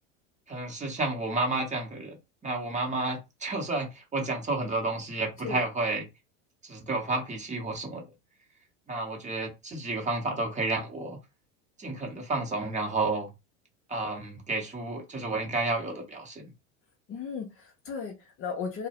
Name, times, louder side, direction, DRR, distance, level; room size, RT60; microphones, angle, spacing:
voice 1, 0.5-2.1 2.4-6.1 6.6-8.0 8.9-11.2 11.8-13.3 13.9-16.5, right 2 dB, 20° right, 0.8 m, -31 dB
voice 2, 17.1-18.9, left 5 dB, 35° left, 0.6 m, -36 dB
2.2 x 2.0 x 2.8 m
hypercardioid pair, 100°, 39 cm